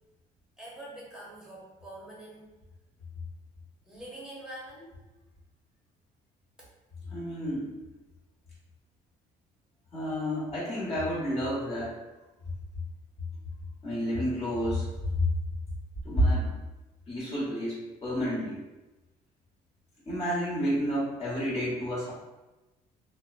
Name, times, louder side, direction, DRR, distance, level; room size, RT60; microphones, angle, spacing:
voice 1, 0.6-2.5 3.8-5.0 6.6-6.7, right 1 dB, 5° right, -6 dB, 0.9 m, -45 dB
voice 2, 7.1-7.7 9.9-12.0 13.8-14.9 15.2-15.3 16.0-16.6 17.1-18.6 20.0-22.1, equal, 35° left, -7 dB, 1.5 m, -29 dB
2.7 x 2.2 x 2.5 m, 1.1 s
cardioid pair, 110°, 17 cm